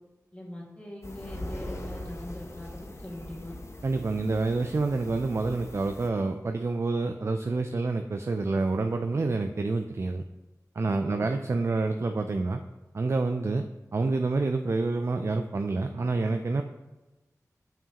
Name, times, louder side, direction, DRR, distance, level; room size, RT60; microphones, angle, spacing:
voice 1, 0.3-3.6 11.0-11.3, left 1 dB, 20° left, -4 dB, 1.9 m, -41 dB
sound 1, 1.0-6.1, left 1 dB, 45° left, 0.8 m, -41 dB
voice 2, 3.8-10.2 10.8-12.6 12.9-13.6 13.9-16.6, right 3 dB, 45° right, 6 dB, 0.3 m, -28 dB
7.1 x 5.7 x 2.9 m, 1.1 s
wide cardioid pair, 60°, 6 cm